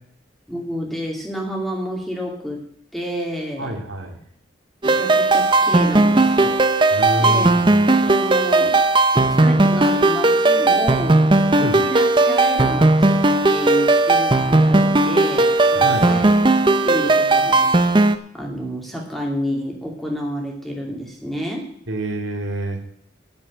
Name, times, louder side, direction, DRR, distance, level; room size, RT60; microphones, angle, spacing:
voice 1, 0.5-2.6 2.9-3.8 4.8-6.6 7.2-7.5 8.0-8.8 9.1-11.2 11.5-13.2 13.5-16.4 16.8-18.0 18.3-21.7, equal, ahead, 0 dB, 2.5 m, -29 dB
voice 2, 3.6-4.2 6.9-7.8 11.6-11.8 15.7-16.2 21.9-22.8, right 1 dB, 85° right, 3 dB, 2.6 m, -26 dB
sound 1, 4.8-18.2, right 2 dB, 25° right, 0.6 m, -16 dB
10.5 x 7.8 x 7.9 m, 0.66 s
head